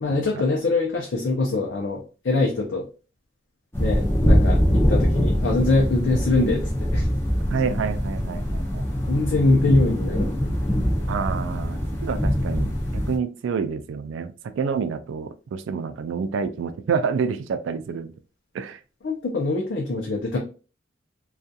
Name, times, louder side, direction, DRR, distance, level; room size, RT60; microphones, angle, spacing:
voice 1, 0.0-2.8 3.8-7.1 9.1-10.4 19.0-20.4, left 2 dB, 65° left, 0.5 m, -23 dB
sound 1, 3.7-13.2, equal, 10° left, 0.5 m, -23 dB
voice 2, 7.5-8.9 11.1-18.1 18.5-18.8, right 6 dB, 75° right, 0.3 m, -28 dB
2.7 x 2.3 x 2.3 m
head